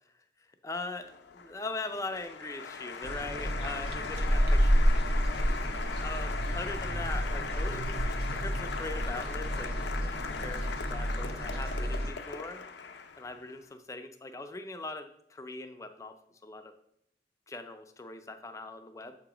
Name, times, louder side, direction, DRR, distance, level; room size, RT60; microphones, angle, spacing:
voice 1, 0.6-4.7 5.6-10.2 10.4-12.7 13.2-16.2 16.4-16.7 17.5-19.2, left 2 dB, 15° left, 7 dB, 0.4 m, -41 dB
Applause, 1.0-13.5, left 5 dB, 70° left, 0.6 m, -39 dB
sound 1, 3.0-12.1, equal, 60° right, 0.7 m, -30 dB
7.4 x 2.9 x 4.9 m, 0.73 s
head